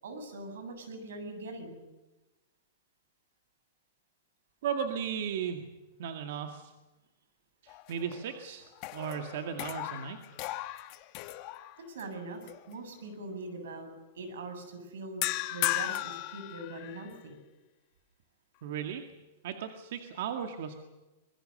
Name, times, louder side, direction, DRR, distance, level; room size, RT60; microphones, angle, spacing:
voice 1, 0.0-1.8 11.8-12.4 12.7-15.3 15.5-17.4, right 2 dB, 90° right, 7 dB, 7.8 m, -42 dB
voice 2, 4.6-5.6 6.0-6.7 7.6-10.2 18.6-19.0 19.4-20.8, right 8 dB, 60° right, 5 dB, 2.1 m, -36 dB
sound 1, 7.7-8.4 8.7-12.0 12.5-12.7 15.2-17.2, left 17 dB, 35° left, 1.3 m, -36 dB
25.0 x 22.0 x 6.7 m, 1.1 s
supercardioid pair, 165°, 0 cm